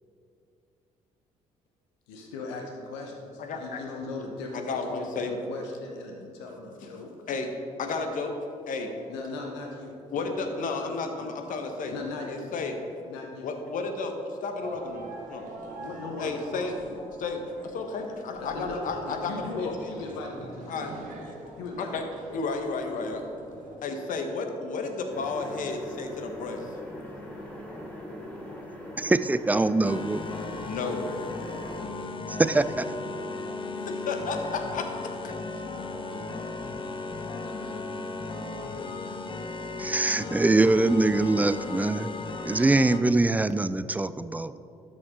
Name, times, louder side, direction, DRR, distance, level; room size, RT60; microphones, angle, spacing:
voice 1, 2.1-7.2 9.1-10.5 10.8-10.9 11.2-11.3 11.9-12.5 13.1-13.5 15.8-17.0 18.0-18.1 18.4-20.9 21.6-21.9, left 3 dB, 90° left, 1 dB, 0.9 m, -39 dB
voice 2, 3.4-3.8 4.5-5.4 6.8-6.9 7.3-7.5 7.8-8.3 8.7-9.1 10.1-11.9 12.3-12.8 13.4-15.5 16.2-16.8 17.2-19.8 20.7-20.9 21.8-22.1 22.3-23.3 23.8-26.7 30.6-31.1 33.8-35.3, left 4 dB, 60° left, 5 dB, 1.1 m, -32 dB
sound 1, 14.6-23.8, right 2 dB, 60° right, 1.7 m, -45 dB
sound 2, 25.1-31.8, left 1 dB, 10° left, 2.1 m, -41 dB
voice 3, 29.0-30.2 32.3-32.9 39.8-42.1 42.5-44.6, right 2 dB, 10° right, 14 dB, 0.3 m, -23 dB
sound 3, 29.8-43.0, left 3 dB, 35° left, 0.9 m, -36 dB
12.5 x 5.3 x 3.7 m, 2.6 s
hypercardioid pair, 60°, 15 cm